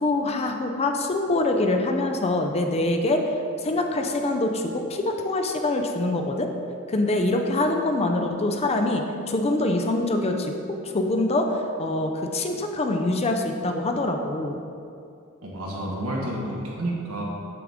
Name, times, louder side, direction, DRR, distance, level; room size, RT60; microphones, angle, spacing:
voice 1, 0.0-3.2 3.6-6.5 6.9-10.5 10.8-14.6, left 2 dB, 30° left, 4 dB, 0.5 m, -24 dB
voice 2, 15.4-17.2, right 1 dB, 75° right, -2 dB, 1.4 m, -30 dB
6.8 x 6.5 x 3.6 m, 2.6 s
head